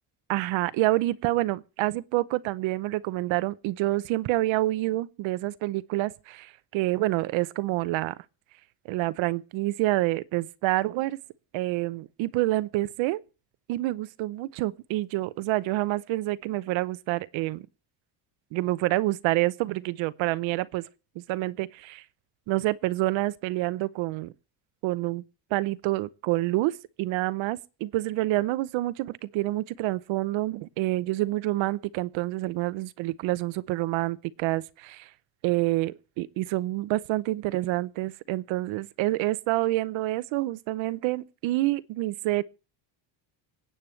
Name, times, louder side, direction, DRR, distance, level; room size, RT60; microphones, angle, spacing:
voice 1, 0.3-8.2 8.9-11.2 11.5-13.2 13.7-17.7 18.5-20.8 21.2-22.0 22.5-24.3 24.8-25.2 25.5-35.1 35.4-42.4, right 18 dB, 75° right, 0.8 m, -27 dB
26.0 x 8.7 x 3.2 m
cardioid pair, 140°, 47 cm